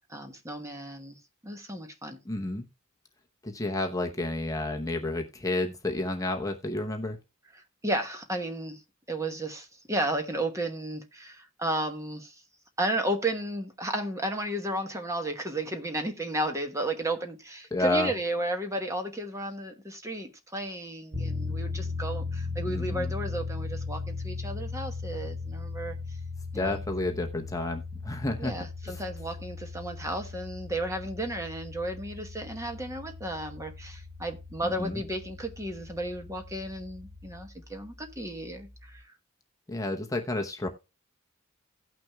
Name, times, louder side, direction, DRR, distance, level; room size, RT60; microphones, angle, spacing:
voice 1, 0.1-2.2 7.8-8.8 9.1-12.3 12.8-25.9 26.5-26.8 28.4-39.0, right 1 dB, 15° right, 1.1 m, -33 dB
voice 2, 2.2-2.7 3.4-7.2 17.7-18.1 22.7-23.1 26.5-28.5 28.9-29.0 34.6-35.0 39.7-40.7, left 2 dB, 15° left, 0.8 m, -30 dB
sound 1, 21.1-37.5, left 3 dB, 35° right, 1.5 m, -37 dB
17.5 x 6.0 x 2.3 m
head